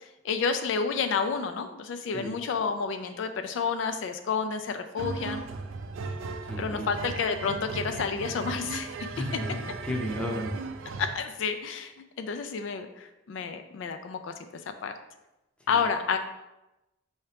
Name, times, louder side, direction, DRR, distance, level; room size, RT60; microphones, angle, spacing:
voice 1, 0.2-5.4 6.6-8.9 11.0-11.9 12.2-14.3 14.8-14.9 15.7-16.2, left 5 dB, 70° left, 8 dB, 0.3 m, -30 dB
sound 1, 5.0-11.2, right 4 dB, 85° right, 0.4 m, -37 dB
voice 2, 6.4-6.9 9.1-10.6 15.7-15.8, equal, 5° left, -1 dB, 0.6 m, -34 dB
5.7 x 2.8 x 3.3 m, 0.96 s
head